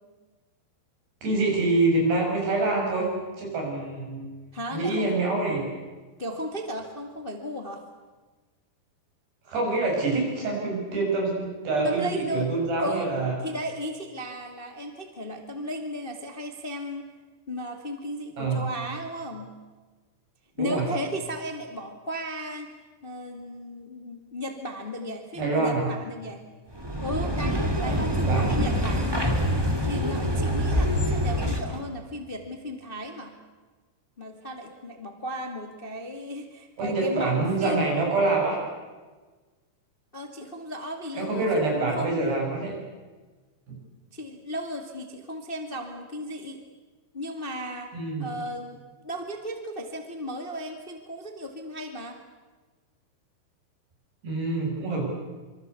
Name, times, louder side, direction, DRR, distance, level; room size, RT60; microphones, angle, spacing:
voice 1, 1.2-3.1 3.4-4.3 4.7-5.6 9.5-13.3 18.4-18.7 20.6-20.8 25.4-25.9 27.9-28.0 28.3-28.7 36.8-38.6 41.1-42.7 47.9-48.3 54.2-55.0, right 3 dB, 80° right, 0 dB, 9.8 m, -26 dB
voice 2, 4.5-5.1 6.2-7.8 11.8-12.5 12.8-17.1 17.5-19.5 20.6-22.7 23.0-26.4 27.0-29.2 29.8-33.4 34.2-37.9 40.1-42.4 44.1-46.6 47.1-47.9 48.2-52.2, equal, 20° left, 4 dB, 1.4 m, -35 dB
sound 1, 26.7-31.8, equal, 10° right, 1.9 m, -25 dB
26.0 x 25.0 x 8.4 m, 1.3 s
omnidirectional pair, 4.7 m